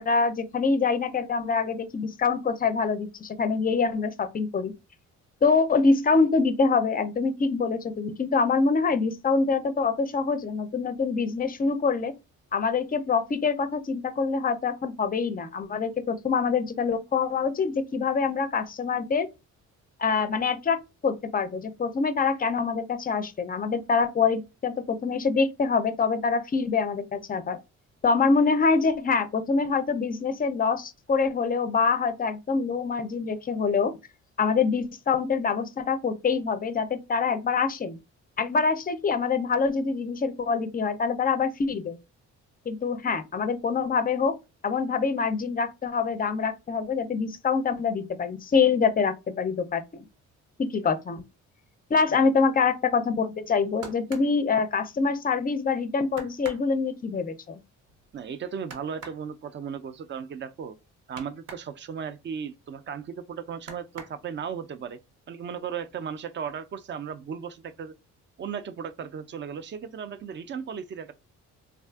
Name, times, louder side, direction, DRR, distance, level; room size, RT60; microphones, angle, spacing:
voice 1, 0.0-4.7 5.4-12.1 12.5-19.3 20.0-20.8 21.0-27.6 28.0-33.9 34.4-38.0 38.4-42.0 42.7-44.4 44.6-50.0 50.6-51.2 51.9-57.6, left 5 dB, 30° left, 0.4 m, -25 dB
sound 1, 53.4-55.4 55.7-55.8 56.1-61.7 62.1-63.2 63.6-64.7 65.1-65.7 66.0-66.7 67.0-67.1, right 4 dB, 90° right, 0.9 m, -46 dB
voice 2, 58.1-60.8 61.1-65.0 65.3-67.9 68.4-71.1, right 7 dB, 40° right, 0.4 m, -36 dB
3.4 x 2.3 x 2.3 m
cardioid pair, 90°, 30 cm